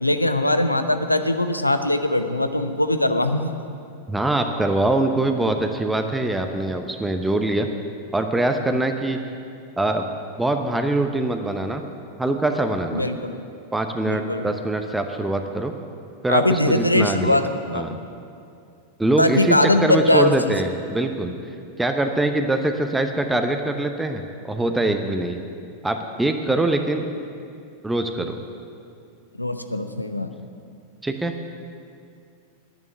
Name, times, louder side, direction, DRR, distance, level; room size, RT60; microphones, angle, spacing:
voice 1, 0.0-3.5 12.9-13.5 14.0-14.5 16.3-17.4 17.7-18.0 19.2-20.5 29.4-30.3, left 1 dB, 85° left, 9 dB, 0.7 m, -21 dB
voice 2, 4.1-7.7 8.1-9.2 9.8-10.0 10.4-11.8 12.2-13.0 13.7-15.7 16.2-17.4 17.7-17.9 19.0-21.3 21.8-25.4 25.8-27.0 27.8-28.4 31.0-31.3, right 2 dB, 5° right, 5 dB, 0.8 m, -23 dB
10.5 x 9.6 x 9.9 m, 2.5 s
figure-of-eight pair, 90°, 0 cm